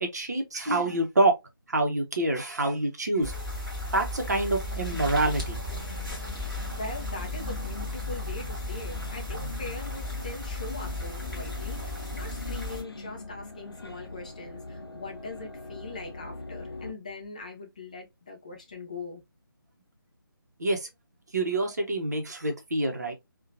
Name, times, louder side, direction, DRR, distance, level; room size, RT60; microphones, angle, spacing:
voice 1, 0.0-1.3 1.7-3.3 3.9-5.6 20.6-20.9 21.3-23.1, right 2 dB, 45° right, 0.7 m, -26 dB
sound 1, 3.2-12.8, left 2 dB, ahead, 1.0 m, -35 dB
sound 2, 4.2-16.9, left 2 dB, 90° left, 0.5 m, -43 dB
voice 2, 6.7-19.2, left 3 dB, 20° left, 0.4 m, -41 dB
2.7 x 2.2 x 2.5 m
figure-of-eight pair, 155°, 12 cm